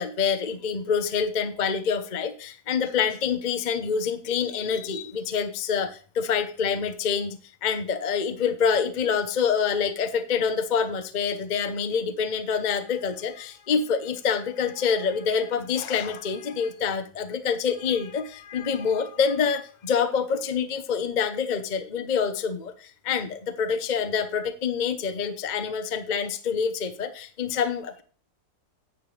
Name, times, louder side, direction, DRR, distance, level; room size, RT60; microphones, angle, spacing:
voice 1, 0.0-28.0, left 6 dB, 40° left, 9 dB, 0.7 m, -26 dB
9.9 x 8.4 x 3.2 m, 0.40 s
omnidirectional pair, 1.8 m